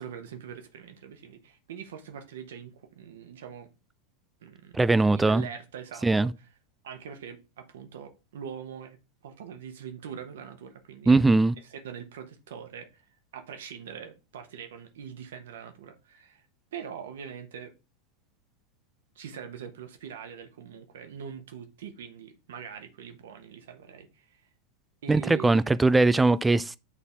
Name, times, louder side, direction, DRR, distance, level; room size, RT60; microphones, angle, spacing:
voice 1, 0.0-3.7 4.4-6.5 6.8-9.0 9.2-11.2 11.6-13.0 13.3-16.4 16.7-17.7 19.1-24.5 25.0-25.7, right 8 dB, 60° right, 1.1 m, -43 dB
voice 2, 4.7-5.4 6.0-6.3 11.1-11.5 25.1-26.7, right 3 dB, 10° right, 0.3 m, -21 dB
8.4 x 4.1 x 3.5 m
figure-of-eight pair, 90°, 0 cm